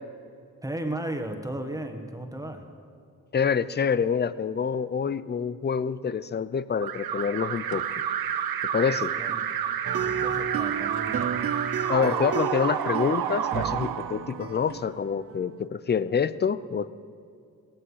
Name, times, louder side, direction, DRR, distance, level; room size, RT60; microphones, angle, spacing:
voice 1, 0.6-2.7 8.9-9.7 9.9-11.3, right 1 dB, 10° right, 5 dB, 1.5 m, -35 dB
voice 2, 3.3-7.8 8.7-9.1 11.9-16.9, left 6 dB, 30° left, 16 dB, 0.5 m, -26 dB
Alarm, 6.8-14.7, right 9 dB, 85° right, 0.8 m, -30 dB
sound 1, 9.8-15.5, right 7 dB, 40° right, 0.5 m, -32 dB
17.0 x 14.5 x 5.7 m, 2.4 s
cardioid pair, 80°, 36 cm